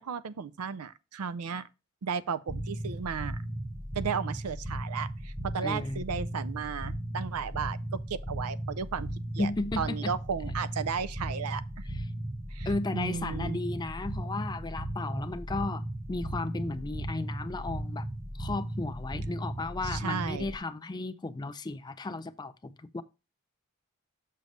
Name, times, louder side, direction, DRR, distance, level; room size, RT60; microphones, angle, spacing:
voice 1, 0.0-1.6 2.0-3.4 4.0-9.1 9.3-9.5 9.8-11.8 12.5-13.6 19.8-20.5, right 6 dB, 85° right, 0.5 m, -34 dB
sound 1, 2.5-20.6, right 1 dB, 15° right, 0.8 m, -36 dB
voice 2, 5.6-6.1 9.4-10.1 11.9-12.0 12.6-18.1 18.3-23.0, left 2 dB, 20° left, 0.4 m, -34 dB
6.8 x 6.4 x 3.1 m
head